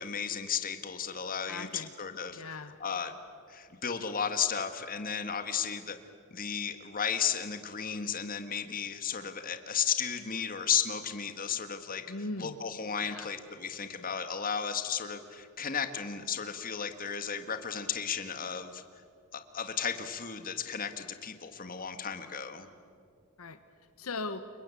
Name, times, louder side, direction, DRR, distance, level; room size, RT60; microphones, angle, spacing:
voice 1, 0.0-2.4 2.8-3.2 3.5-6.0 6.3-12.1 12.4-18.8 19.3-22.7, left 7 dB, 40° left, 8 dB, 1.8 m, -34 dB
voice 2, 1.5-1.9 2.3-2.7 12.1-12.6 13.0-13.3 23.4-23.6 24.0-24.5, left 3 dB, 75° left, 10 dB, 1.2 m, -39 dB
29.0 x 23.5 x 8.5 m, 2.2 s
head